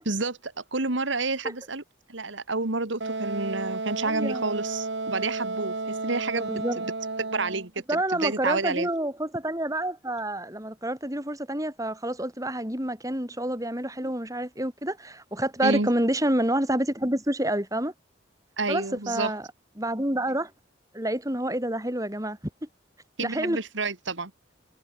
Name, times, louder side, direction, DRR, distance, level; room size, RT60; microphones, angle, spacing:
voice 1, 0.1-1.8 2.1-6.9 7.2-8.9 14.0-14.1 15.6-15.9 18.6-19.3 23.2-24.3, right 3 dB, 80° right, 2.5 m, -30 dB
Wind instrument woodwind instrument, 3.0-7.7, right 3 dB, 60° right, 1.6 m, -32 dB
voice 2, 4.0-4.4 6.3-6.8 7.9-17.9 18.7-19.4 19.8-20.5 20.9-22.4 23.2-23.6, right 1 dB, 15° right, 7.6 m, -28 dB
head